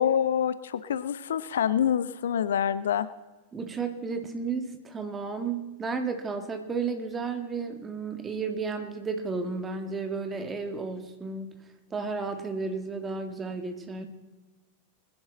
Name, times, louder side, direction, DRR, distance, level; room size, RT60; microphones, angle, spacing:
voice 1, 0.0-3.1, left 9 dB, 65° left, 15 dB, 0.6 m, -26 dB
voice 2, 3.5-11.6 11.9-14.1, right 4 dB, 20° right, 7 dB, 1.8 m, -33 dB
20.5 x 11.0 x 3.9 m, 1.2 s
figure-of-eight pair, 90°, 0 cm